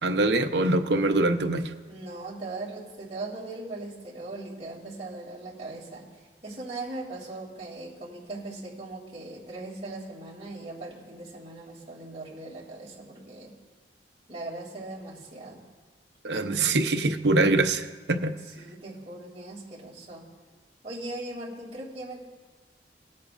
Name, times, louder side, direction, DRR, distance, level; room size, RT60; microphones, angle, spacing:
voice 1, 0.0-1.7 16.2-18.4, right 2 dB, 75° right, 6 dB, 0.8 m, -24 dB
voice 2, 1.9-6.1 6.4-13.6 14.3-15.6 18.5-20.3 20.8-22.2, right 2 dB, 35° right, -5 dB, 2.9 m, -39 dB
20.5 x 8.4 x 2.6 m, 1.4 s
head